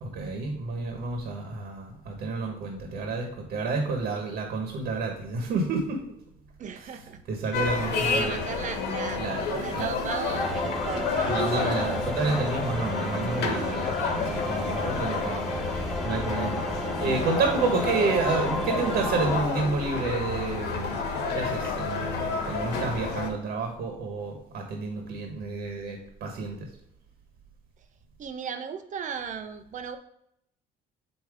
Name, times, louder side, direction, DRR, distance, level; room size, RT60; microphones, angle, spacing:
voice 1, 0.0-6.0 6.8-7.0 7.3-8.4 9.2-9.4 9.7-9.9 11.2-14.0 14.2-15.5 15.8-16.6 17.0-21.0 21.3-26.7, right 4 dB, 70° right, 2 dB, 1.5 m, -30 dB
voice 2, 6.6-7.2 7.5-7.6 7.9-9.2 9.5-11.9 14.7-14.9 28.2-30.0, right 6 dB, 45° right, 8 dB, 0.8 m, -36 dB
sound 1, 7.5-23.3, left 4 dB, 75° left, 1.4 m, -30 dB
sound 2, 10.3-19.4, right 1 dB, ahead, 0.3 m, -33 dB
8.5 x 3.1 x 4.9 m, 0.75 s
cardioid pair, 110°, 17 cm